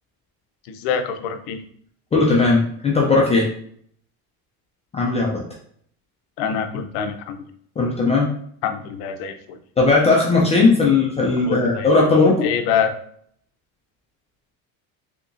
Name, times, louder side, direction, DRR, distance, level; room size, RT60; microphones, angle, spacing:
voice 1, 0.7-1.6 6.4-7.4 8.6-9.6 11.5-11.9 12.4-13.0, left 7 dB, 65° left, 7 dB, 0.6 m, -25 dB
voice 2, 2.1-3.5 4.9-5.4 7.8-8.3 9.8-12.5, left 3 dB, 15° left, -3 dB, 0.3 m, -17 dB
3.7 x 2.9 x 2.5 m, 0.64 s
cardioid pair, 135°, 43 cm